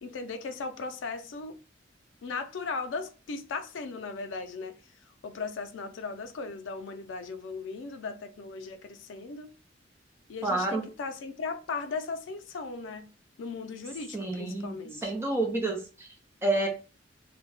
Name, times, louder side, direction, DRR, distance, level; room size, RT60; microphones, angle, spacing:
voice 1, 0.0-1.6 2.2-4.8 5.2-9.6 10.3-13.1 13.4-15.1, left 4 dB, 90° left, 0.4 m, -37 dB
voice 2, 10.4-10.8 14.1-16.1 16.4-16.7, right 2 dB, 15° right, 0.4 m, -29 dB
2.1 x 2.1 x 3.8 m
head